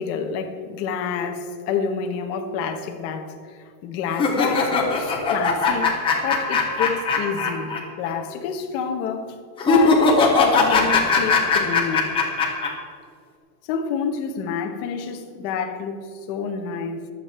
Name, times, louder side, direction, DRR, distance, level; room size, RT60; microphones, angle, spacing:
voice 1, 0.0-7.7 8.0-9.4 9.6-12.1 13.6-17.1, left 6 dB, 30° left, 1.2 m, -28 dB
sound 1, 4.1-7.8 8.1-8.2 9.6-12.7, left 4 dB, 10° left, 1.6 m, -19 dB
24.0 x 8.7 x 4.4 m
supercardioid pair, 175°, 49 cm